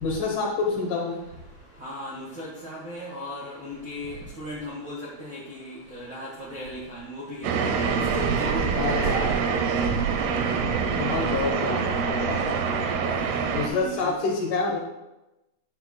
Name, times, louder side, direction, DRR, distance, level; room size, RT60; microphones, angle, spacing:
voice 1, 0.0-1.2 8.7-9.4 10.6-12.9 13.5-14.8, left 3 dB, 65° left, 0 dB, 2.2 m, -28 dB
voice 2, 1.8-7.5 8.1-9.3 13.6-14.1, left 1 dB, 55° right, -5 dB, 1.2 m, -37 dB
sound 1, 7.4-13.7, right 5 dB, 80° right, 2.9 m, -25 dB
13.0 x 9.1 x 2.2 m, 0.98 s
omnidirectional pair, 4.6 m